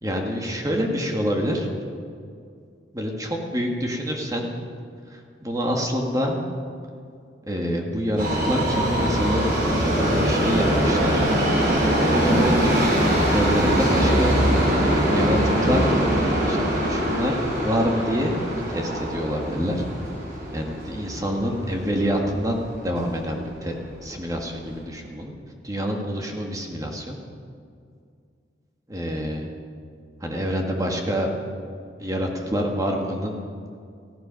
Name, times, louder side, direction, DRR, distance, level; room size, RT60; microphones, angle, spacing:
voice 1, 0.0-1.7 2.9-4.5 5.1-6.4 7.5-11.3 12.0-12.8 13.1-14.3 15.1-16.0 16.4-19.9 20.5-23.8 24.0-25.3 25.6-27.1 28.9-29.5 30.2-31.3 32.0-33.4, equal, 20° right, 1 dB, 1.7 m, -26 dB
Subway metro underground, 8.2-22.3 22.6-22.7 23.5-23.6 23.9-24.0 24.6-24.7, equal, 50° right, 4.4 m, -22 dB
17.5 x 15.5 x 5.2 m, 2.3 s
head